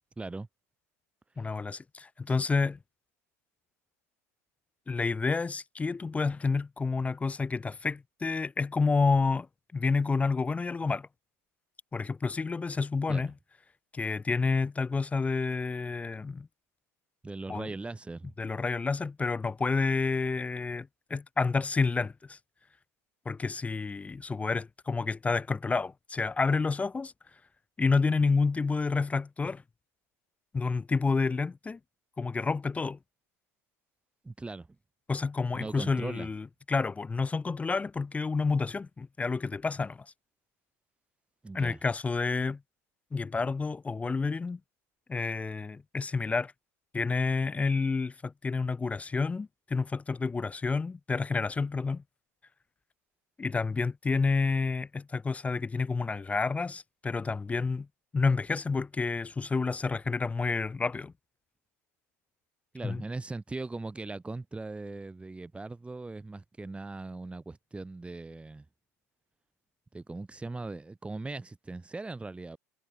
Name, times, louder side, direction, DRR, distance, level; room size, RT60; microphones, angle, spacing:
voice 1, 0.2-0.5 2.3-2.5 13.1-13.3 17.2-18.3 34.2-34.7 35.5-36.3 41.4-41.8 62.7-68.7 69.9-72.6, right 3 dB, 15° right, 2.6 m, -39 dB
voice 2, 1.4-2.8 4.9-9.5 9.7-11.1 11.9-13.3 13.9-16.5 17.5-17.7 18.4-22.4 23.3-27.1 27.8-29.6 30.5-31.8 32.2-33.0 35.1-40.1 41.5-42.6 43.1-44.6 45.1-46.5 46.9-52.0 53.4-57.9 58.1-61.1 62.8-63.0, left 4 dB, 15° left, 0.4 m, -29 dB
hypercardioid pair, 75°, 9 cm